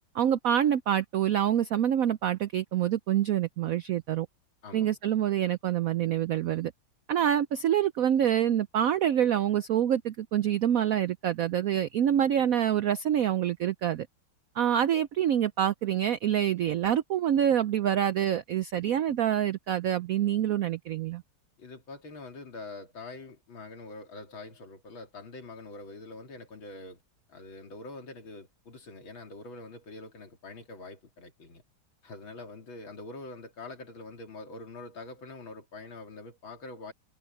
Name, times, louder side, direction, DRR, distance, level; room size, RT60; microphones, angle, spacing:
voice 1, 0.1-4.3 4.7-6.7 7.1-14.1 14.6-21.2, right 10 dB, 80° right, 0.7 m, -26 dB
voice 2, 4.6-5.0 21.6-27.0 27.3-31.6 32.0-36.9, left 3 dB, 80° left, 3.8 m, -44 dB
omnidirectional pair, 2.2 m